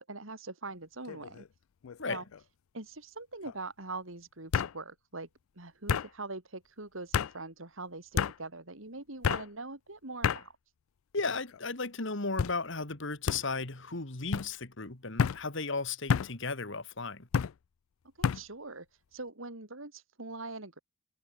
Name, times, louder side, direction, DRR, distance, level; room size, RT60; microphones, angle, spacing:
voice 1, 0.0-1.5 2.1-2.2 2.7-5.3 5.6-10.6 18.2-18.9 19.1-20.8, right 3 dB, 75° right, 4.2 m, -42 dB
sound 1, 1.1-1.5 1.8-2.4 3.5-3.6 4.5-4.7 5.9-6.1 7.1-7.3 8.2-8.4 9.2-9.5 10.2-10.4 11.2-11.6 12.4-12.6 13.3-13.4 14.3-14.5 15.2-15.4 16.1-16.3 17.3-17.5 18.2-18.4, left 7 dB, 90° left, 0.4 m, -29 dB
voice 2, 11.1-17.3, left 3 dB, 65° left, 2.4 m, -35 dB
head